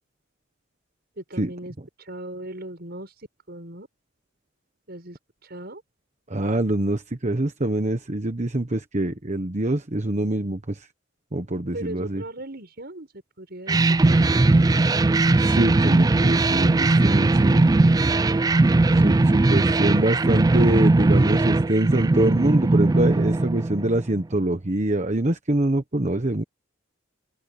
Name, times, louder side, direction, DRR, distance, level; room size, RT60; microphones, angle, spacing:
voice 1, 1.2-1.7 2.0-3.1 3.5-3.9 4.9-5.8 11.7-13.1 13.4-14.9, right 1 dB, 55° right, 7.3 m, -38 dB
voice 2, 6.3-10.9 11.3-12.2 15.4-17.8 18.9-26.4, right 1 dB, 35° right, 1.2 m, -24 dB
sound 1, 13.7-24.2, right 2 dB, 20° right, 0.3 m, -19 dB
open air
head